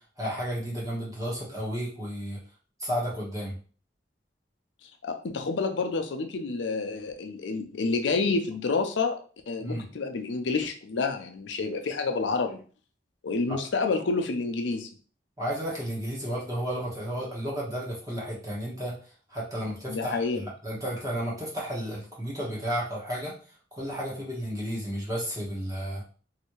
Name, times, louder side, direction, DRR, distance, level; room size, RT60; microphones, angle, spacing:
voice 1, 0.2-2.4 2.8-3.5 9.6-9.8 13.5-13.6 15.4-18.9 19.3-23.3 23.7-26.0, equal, 20° right, -5 dB, 1.2 m, -32 dB
voice 2, 5.0-9.2 9.5-12.6 13.2-14.9 19.9-20.4, left 4 dB, 75° left, 5 dB, 0.5 m, -29 dB
3.2 x 2.7 x 3.1 m, 0.39 s
head